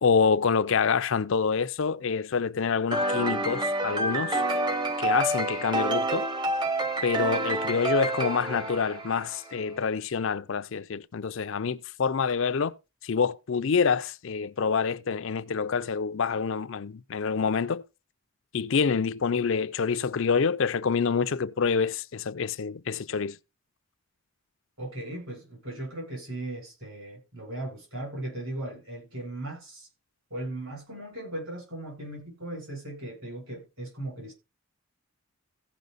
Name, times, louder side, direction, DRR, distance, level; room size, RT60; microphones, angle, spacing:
voice 1, 0.0-4.6 5.0-6.3 7.0-12.7 13.0-17.8 18.5-23.4, left 5 dB, 60° left, 0.5 m, -27 dB
sound 1, 2.9-9.5, right 2 dB, 20° right, 0.7 m, -28 dB
voice 2, 24.8-29.9 30.3-34.3, right 1 dB, 65° right, 7.7 m, -37 dB
16.0 x 5.6 x 4.0 m
head